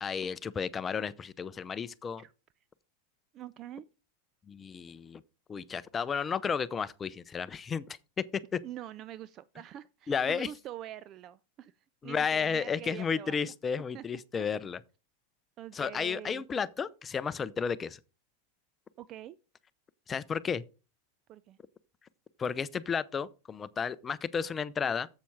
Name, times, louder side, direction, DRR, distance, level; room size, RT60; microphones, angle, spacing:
voice 1, 0.0-2.2 4.5-5.2 5.5-7.9 8.5-8.6 10.1-10.5 12.0-14.8 15.7-18.0 20.1-20.6 22.4-25.1, left 6 dB, 25° left, 0.6 m, -32 dB
voice 2, 3.3-3.9 8.6-11.7 12.0-13.5 13.9-14.5 15.6-16.4 19.0-19.4 21.3-21.6, right 12 dB, 40° right, 0.4 m, -45 dB
7.4 x 6.9 x 4.6 m
hypercardioid pair, 105°, 0 cm